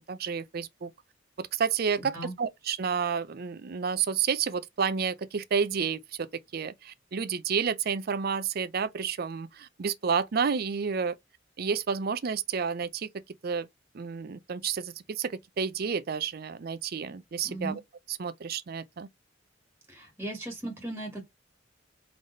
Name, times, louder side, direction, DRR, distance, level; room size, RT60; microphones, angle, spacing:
voice 1, 0.1-0.9 1.4-6.3 6.5-11.1 11.6-13.1 13.4-13.7 13.9-17.8 18.2-19.1, right 6 dB, 55° right, 0.5 m, -30 dB
voice 2, 2.0-2.3 17.4-17.8 19.9-21.3, right 1 dB, 10° right, 1.6 m, -37 dB
3.9 x 3.4 x 3.9 m
head